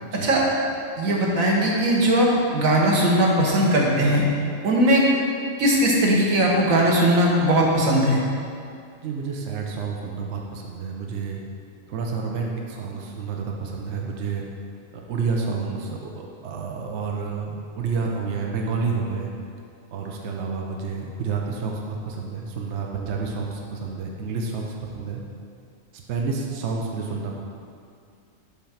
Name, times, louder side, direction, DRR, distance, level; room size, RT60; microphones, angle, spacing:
voice 1, 1.0-4.2 4.6-5.0 5.6-8.2, right 1 dB, 90° right, -3 dB, 1.5 m, -19 dB
voice 2, 9.0-11.4 11.9-14.4 15.1-19.3 19.9-25.2 26.1-27.3, right 5 dB, 65° right, 0 dB, 1.0 m, -29 dB
7.1 x 3.7 x 5.7 m, 2.3 s
omnidirectional pair, 1.4 m